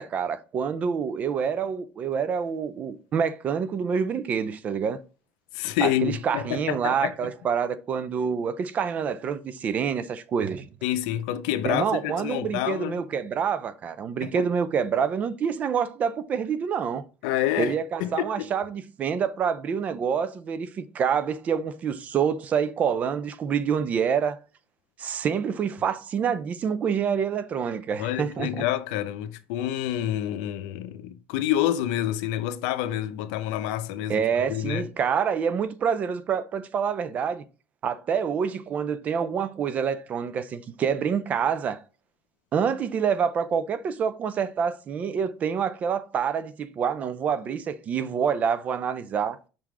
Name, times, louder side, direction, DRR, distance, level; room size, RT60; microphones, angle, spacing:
voice 1, 0.0-5.0 5.8-10.7 11.6-17.1 17.6-24.4 25.0-28.6 34.1-37.4 37.8-41.8 42.5-49.4, right 7 dB, 40° right, 0.5 m, -27 dB
voice 2, 5.5-7.1 10.8-13.0 14.2-14.5 17.2-18.5 28.0-34.2 34.5-34.9, left 12 dB, 85° left, 0.6 m, -28 dB
5.7 x 3.7 x 4.8 m
cardioid pair, 120°, 4 cm